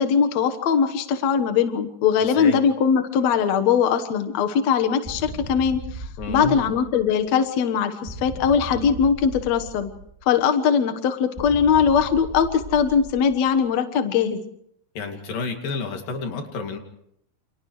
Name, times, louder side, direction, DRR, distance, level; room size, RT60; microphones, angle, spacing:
voice 1, 0.0-9.9 10.3-14.4, left 7 dB, 60° left, 7 dB, 2.3 m, -21 dB
voice 2, 2.2-2.6 6.2-6.7 15.0-16.8, left 4 dB, 85° left, 4 dB, 4.3 m, -30 dB
sound 1, 5.0-7.3 8.1-10.4 11.4-13.6, right 2 dB, 10° right, 2.6 m, -37 dB
29.5 x 29.0 x 3.2 m, 0.74 s
omnidirectional pair, 3.9 m